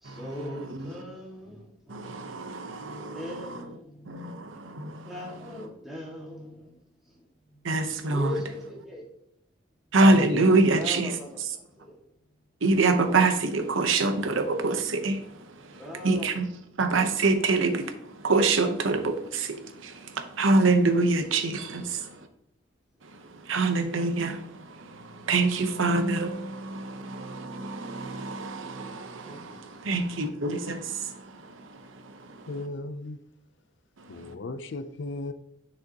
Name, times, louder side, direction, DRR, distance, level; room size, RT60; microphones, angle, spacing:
voice 1, 0.0-4.6 5.1-6.8 7.1-7.6 8.1-9.0 10.7-12.0 15.8-16.4 21.6-22.0 29.2-29.6, left 1 dB, ahead, 1.9 m, -41 dB
voice 2, 1.9-3.6 4.1-5.1 7.6-8.3 9.9-11.1 12.6-15.4 15.7-16.5 16.8-22.2 23.4-31.8 32.0-32.4, right 3 dB, 85° right, 0.8 m, -26 dB
voice 3, 10.0-10.5 32.5-33.2 34.1-35.3, left 3 dB, 65° left, 0.5 m, -33 dB
7.6 x 6.3 x 2.9 m
head